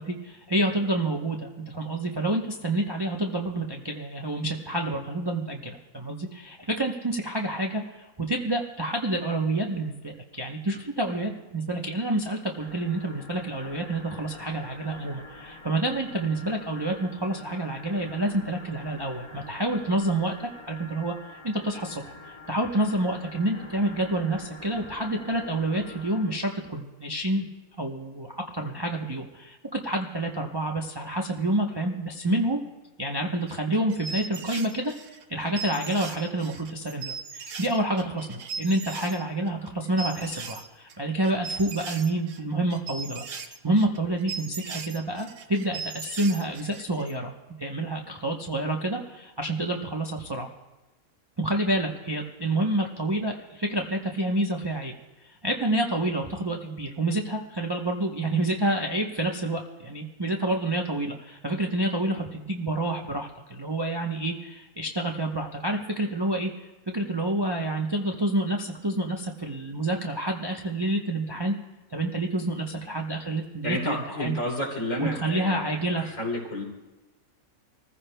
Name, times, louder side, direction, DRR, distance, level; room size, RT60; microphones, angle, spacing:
voice 1, 0.0-21.1 21.4-27.5 27.8-32.6 33.0-35.0 35.3-47.3 47.6-50.5 51.4-54.9 55.2-66.7 66.9-71.5 71.9-74.4 75.0-76.0, right 1 dB, 25° right, 1 dB, 0.6 m, -28 dB
sound 1, 12.6-26.3, left 2 dB, 20° left, 1.1 m, -46 dB
sound 2, 33.5-39.2 39.5-41.0 41.2-47.1, right 5 dB, 60° right, 1.1 m, -38 dB
voice 2, 73.6-76.6, left 1 dB, 60° left, -3 dB, 3.4 m, -31 dB
26.5 x 15.0 x 2.2 m, 1.1 s
omnidirectional pair, 1.6 m